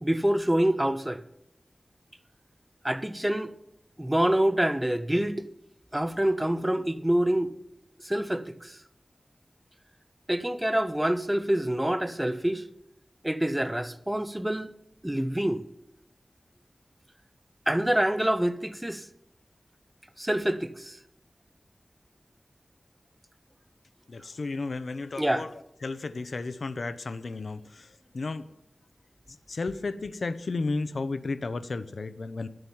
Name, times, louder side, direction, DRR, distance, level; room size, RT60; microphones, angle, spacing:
voice 1, 0.0-1.2 2.8-3.5 4.0-5.5 5.9-7.5 8.0-8.8 10.3-12.6 13.2-14.7 15.0-15.6 17.7-19.1 20.2-21.0 25.2-25.5, right 1 dB, 15° right, 0.7 m, -26 dB
voice 2, 24.1-25.5 25.8-28.5 29.5-32.5, left 3 dB, 85° left, 0.6 m, -33 dB
10.5 x 7.9 x 7.2 m
wide cardioid pair, 70°, 0 cm